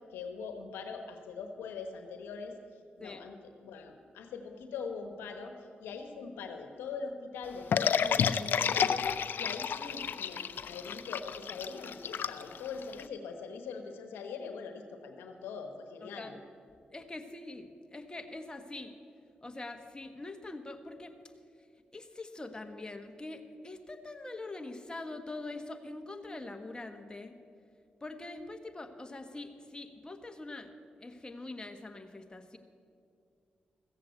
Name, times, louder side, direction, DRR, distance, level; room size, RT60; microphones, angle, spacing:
voice 1, 0.1-2.5 3.0-3.4 3.6-5.5 5.8-9.0 9.4-16.3, left 5 dB, 90° left, 5 dB, 1.1 m, -42 dB
sound 1, 7.7-13.0, left 7 dB, 70° left, 0.5 m, -30 dB
voice 2, 16.0-16.4 16.9-18.9 19.4-21.1 21.9-27.3 28.0-30.7 31.0-32.6, left 2 dB, 25° left, 6 dB, 1.3 m, -43 dB
15.0 x 7.6 x 8.2 m, 2.3 s
supercardioid pair, 50°, 4 cm